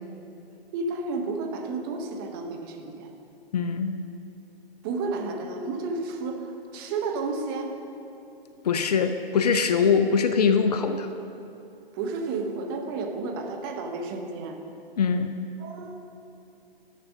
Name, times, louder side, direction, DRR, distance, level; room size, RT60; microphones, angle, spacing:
voice 1, 0.7-3.1 4.8-7.7 11.9-14.6 15.6-16.0, right 3 dB, 25° right, 4 dB, 0.9 m, -31 dB
voice 2, 3.5-3.9 8.6-11.1 15.0-15.3, left 6 dB, 40° left, 8 dB, 0.5 m, -22 dB
10.5 x 6.6 x 6.0 m, 2.7 s
figure-of-eight pair, 135°, 30 cm